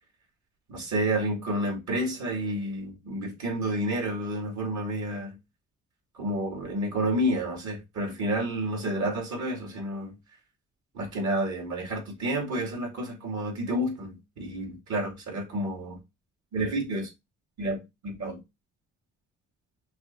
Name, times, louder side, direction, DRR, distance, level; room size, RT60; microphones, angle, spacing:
voice 1, 0.7-5.4 6.2-10.2 10.9-16.0 16.5-17.1 17.6-18.4, right 1 dB, 70° right, 2.5 m, -30 dB
6.0 x 3.1 x 2.7 m
cardioid pair, 90°, 30 cm